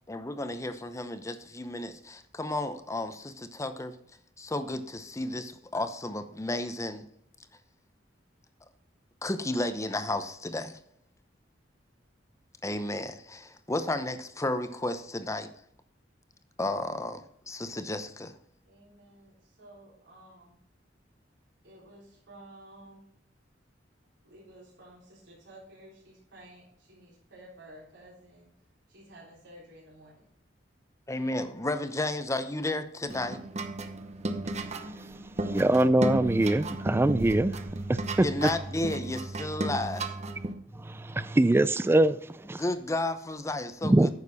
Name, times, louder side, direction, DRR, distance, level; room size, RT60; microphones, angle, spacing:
voice 1, 0.1-4.0 4.4-7.0 9.2-10.8 12.6-15.5 16.6-18.3 31.1-33.4 38.2-40.1 42.6-44.1, left 2 dB, 15° left, 0.7 m, -32 dB
voice 2, 18.6-20.6 21.6-23.0 24.2-28.5 28.9-30.3, right 1 dB, 70° right, 3.6 m, -52 dB
sound 1, 33.1-40.5, right 2 dB, 40° right, 0.8 m, -34 dB
voice 3, 35.4-37.5 37.9-38.3 40.9-42.2 42.5-42.6 43.8-44.1, right 1 dB, 15° right, 0.3 m, -23 dB
9.7 x 6.7 x 4.1 m
head